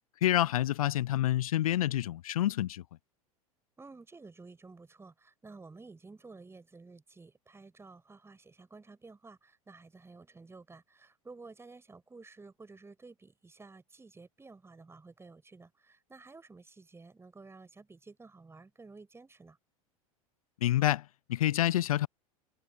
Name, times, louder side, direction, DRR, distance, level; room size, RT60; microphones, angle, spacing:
voice 1, 0.2-2.8 20.6-22.1, left 13 dB, 70° left, 0.5 m, -28 dB
voice 2, 3.8-19.6, right 3 dB, 15° right, 7.6 m, -52 dB
figure-of-eight pair, 85°, 19 cm